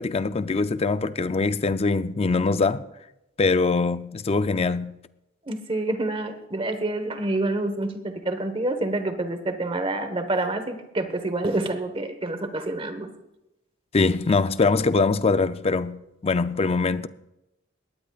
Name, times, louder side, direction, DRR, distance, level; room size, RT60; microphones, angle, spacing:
voice 1, 0.0-2.8 3.4-5.0 13.9-17.1, left 3 dB, 30° left, 0.5 m, -23 dB
voice 2, 5.5-13.1, right 2 dB, 30° right, 1.3 m, -27 dB
21.5 x 18.5 x 2.4 m
head